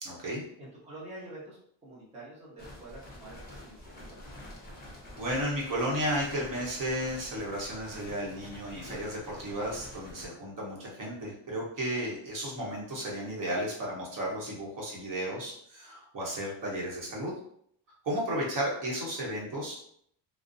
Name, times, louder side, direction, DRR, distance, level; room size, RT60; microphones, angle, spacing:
voice 1, 0.0-0.4 5.2-17.3 18.0-19.8, equal, 40° right, -4 dB, 0.9 m, -33 dB
voice 2, 0.6-4.3, right 1 dB, 15° right, -7 dB, 0.6 m, -47 dB
sound 1, 2.6-10.3, left 1 dB, 20° left, 0.7 m, -48 dB
2.5 x 2.0 x 2.5 m, 0.66 s
cardioid pair, 130°, 49 cm